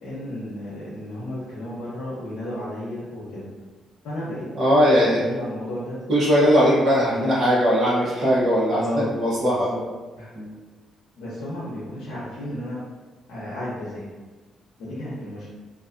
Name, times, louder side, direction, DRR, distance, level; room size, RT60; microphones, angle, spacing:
voice 1, 0.0-3.5 4.0-4.5 5.0-6.0 7.1-7.3 8.7-9.1 9.5-9.8 10.1-10.3 11.2-12.8 13.3-14.0 14.8-15.5, left 1 dB, 85° left, -9 dB, 0.8 m, -33 dB
voice 2, 4.6-5.2 6.1-8.8 9.1-9.7 10.3-10.5, equal, 45° right, -8 dB, 0.8 m, -19 dB
2.5 x 2.2 x 2.4 m, 1.3 s
cardioid pair, 90°, 0 cm